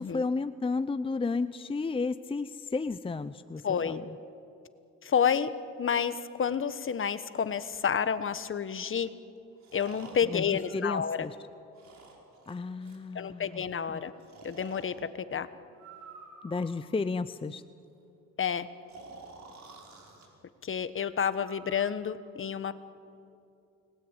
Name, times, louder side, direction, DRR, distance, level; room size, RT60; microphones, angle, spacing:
voice 1, 0.0-4.2 10.3-11.4 12.5-13.6 13.9-14.0 16.4-17.6, left 4 dB, 20° left, 12 dB, 0.6 m, -33 dB
voice 2, 3.6-4.0 5.0-5.5 5.8-9.1 9.7-11.3 13.1-14.1 14.4-15.5 18.4-18.7 20.6-22.7, left 7 dB, 45° left, 13 dB, 1.3 m, -30 dB
Breathing, 7.7-7.8 9.6-11.3 11.7-13.1 14.2-15.0 15.7-16.9 18.9-20.3 21.3-21.8, right 3 dB, 65° right, 5.7 m, -50 dB
29.0 x 20.0 x 9.0 m, 2.6 s
cardioid pair, 90°, 30 cm